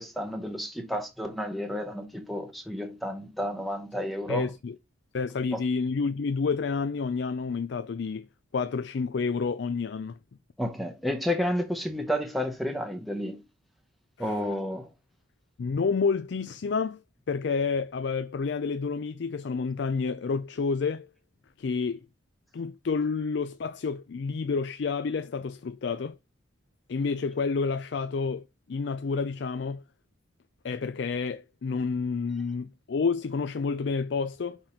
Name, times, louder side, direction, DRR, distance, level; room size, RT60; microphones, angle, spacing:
voice 1, 0.0-4.5 5.5-5.6 10.6-13.4 14.2-14.9, equal, ahead, 0.7 m, -31 dB
voice 2, 4.3-4.8 5.1-8.3 8.5-10.2 14.2-14.5 15.6-17.0 17.3-21.1 21.6-22.0 22.5-26.2 26.9-28.4 28.7-29.8 30.6-34.6, left 5 dB, 55° left, 0.4 m, -29 dB
5.9 x 4.4 x 4.9 m
head